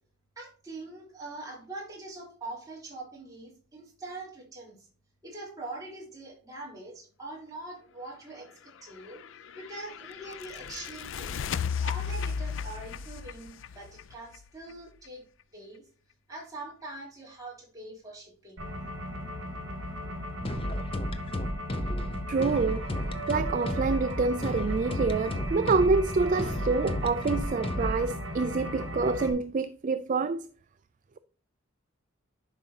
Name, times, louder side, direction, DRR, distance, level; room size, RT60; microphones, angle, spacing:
voice 1, 0.4-4.8 5.2-9.2 9.6-11.3 11.8-15.2 15.5-15.8 16.3-18.7, right 2 dB, 15° right, 3.5 m, -43 dB
sound 1, 9.0-14.7, left 6 dB, 65° left, 0.4 m, -35 dB
sound 2, 18.6-29.3, equal, 70° right, 2.1 m, -37 dB
sound 3, 20.4-28.1, equal, 25° left, 0.7 m, -33 dB
voice 2, 22.3-22.8 23.3-30.5, right 4 dB, 40° right, 0.3 m, -27 dB
11.5 x 5.2 x 2.8 m
head